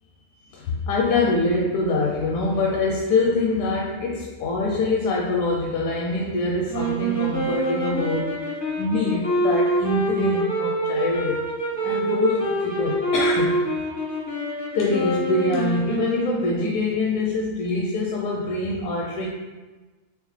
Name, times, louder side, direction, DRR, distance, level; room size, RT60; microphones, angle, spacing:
voice 1, 0.5-11.4 11.8-13.6 14.7-19.3, left 2 dB, 80° left, -2 dB, 1.0 m, -24 dB
sound 1, 6.7-16.7, right 1 dB, 20° left, 0.5 m, -26 dB
3.6 x 3.3 x 3.1 m, 1.3 s
omnidirectional pair, 1.5 m